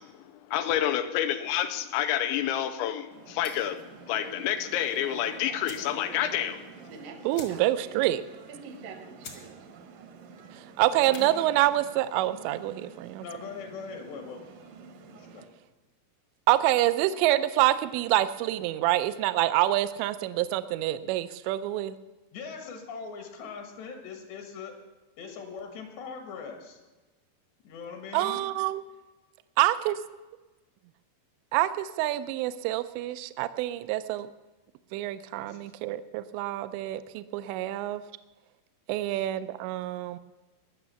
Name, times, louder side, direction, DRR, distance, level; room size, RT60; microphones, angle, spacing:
voice 1, 0.5-3.8 4.1-6.6, left 11 dB, 90° left, 9 dB, 3.1 m, -28 dB
sound 1, 3.1-15.4, right 5 dB, 70° right, 2.2 m, -47 dB
sound 2, 3.4-3.8 5.1-5.2 5.6-6.0 6.3-6.4 6.6-6.8 7.3-7.9 8.2-8.3 8.8-8.9 9.2-9.5 9.8-10.2 10.9-11.3, left 4 dB, 50° left, 1.7 m, -46 dB
voice 2, 7.2-8.2 10.8-13.2 16.5-21.9 28.1-28.8 29.6-30.0 31.5-34.3 34.9-38.0 38.9-40.2, right 15 dB, 85° right, 12 dB, 2.7 m, -26 dB
voice 3, 10.9-11.3 13.2-14.5 15.1-15.5 22.3-24.8 25.2-26.8 27.7-28.4 35.4-35.7 39.1-39.3, left 5 dB, 70° left, 4 dB, 3.6 m, -41 dB
20.5 x 7.0 x 6.9 m, 1.2 s
omnidirectional pair, 5.3 m